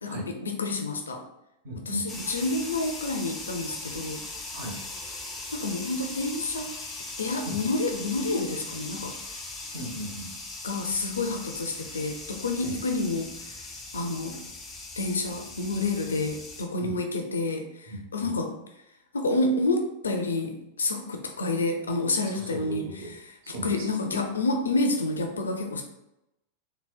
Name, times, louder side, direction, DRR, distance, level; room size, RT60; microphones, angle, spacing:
voice 1, 0.0-1.2 1.9-4.2 5.5-6.7 7.2-9.1 10.6-13.5 13.9-14.4 15.0-18.5 19.1-25.8, left 2 dB, 70° left, 4 dB, 0.4 m, -29 dB
voice 2, 1.6-2.3 4.5-4.8 7.5-7.6 9.7-10.3 12.6-12.7 16.8-16.9 17.9-18.3 22.3-23.1 23.4-23.9, right 1 dB, 55° right, -1 dB, 0.9 m, -37 dB
sound 1, 2.1-16.7, left 2 dB, 15° left, 0.5 m, -39 dB
3.8 x 2.0 x 2.4 m, 0.86 s
figure-of-eight pair, 90°, 0 cm